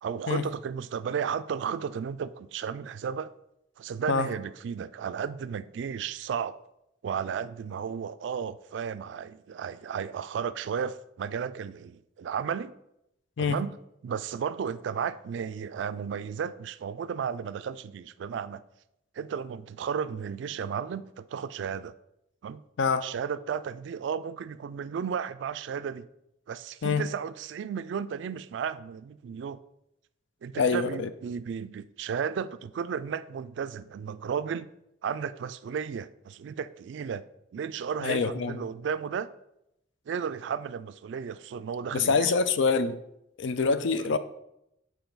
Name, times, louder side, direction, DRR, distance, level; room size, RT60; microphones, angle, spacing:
voice 1, 0.0-3.3 3.8-6.6 7.0-12.7 13.4-13.7 14.0-18.6 19.2-21.9 22.4-22.6 23.0-26.1 26.5-29.6 30.4-34.7 35.0-37.2 37.5-39.3 40.1-42.3 44.0-44.2, right 7 dB, 65° right, 0.3 m, -34 dB
voice 2, 30.6-31.1 38.0-38.6 41.9-43.0 43.4-44.2, left 5 dB, 75° left, 0.4 m, -25 dB
6.9 x 4.5 x 3.9 m
head